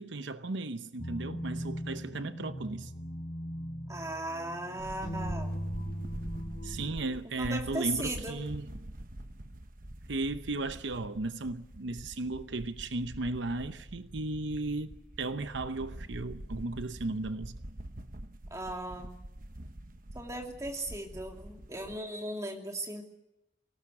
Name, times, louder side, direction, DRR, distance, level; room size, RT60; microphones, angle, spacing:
voice 1, 0.0-2.9 6.6-8.7 10.1-17.6, right 2 dB, 80° right, 0.8 m, -35 dB
sound 1, 1.0-6.9, equal, 45° left, 4.6 m, -39 dB
voice 2, 3.9-5.5 7.4-8.4 18.5-19.1 20.1-23.0, right 2 dB, 15° right, 2.7 m, -37 dB
sound 2, 4.8-22.0, right 1 dB, 45° right, 1.2 m, -45 dB
23.5 x 18.0 x 8.6 m
head